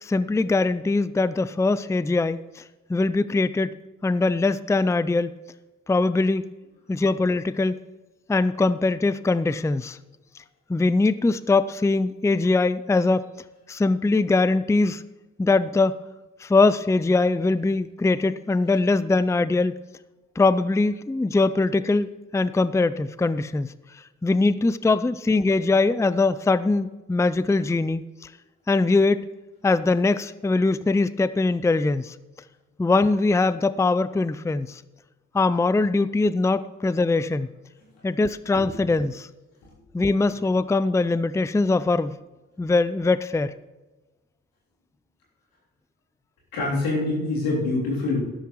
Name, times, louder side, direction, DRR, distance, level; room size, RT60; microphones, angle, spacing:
voice 1, 0.0-2.6 2.9-3.7 4.0-5.3 5.9-6.4 6.9-7.8 8.3-10.0 10.7-13.2 13.7-15.0 15.4-16.0 16.4-19.7 20.4-23.7 24.2-28.3 28.7-29.2 29.6-32.1 32.8-34.8 35.3-37.5 38.0-39.3 39.9-42.2 42.6-43.5, left 3 dB, 10° left, 15 dB, 0.5 m, -22 dB
voice 2, 46.5-48.2, left 2 dB, 90° left, -5 dB, 3.5 m, -25 dB
12.0 x 12.0 x 3.2 m, 1.2 s
supercardioid pair, 40°, 34 cm